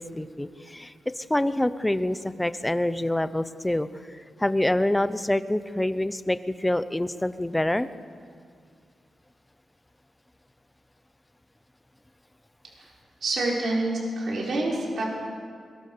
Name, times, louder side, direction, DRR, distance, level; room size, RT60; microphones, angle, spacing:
voice 1, 0.0-7.9, left 1 dB, 10° left, 13 dB, 0.7 m, -26 dB
voice 2, 13.2-15.1, right 2 dB, 60° right, -3 dB, 5.8 m, -27 dB
22.0 x 21.5 x 6.8 m, 2.2 s
wide cardioid pair, 150°, 0 cm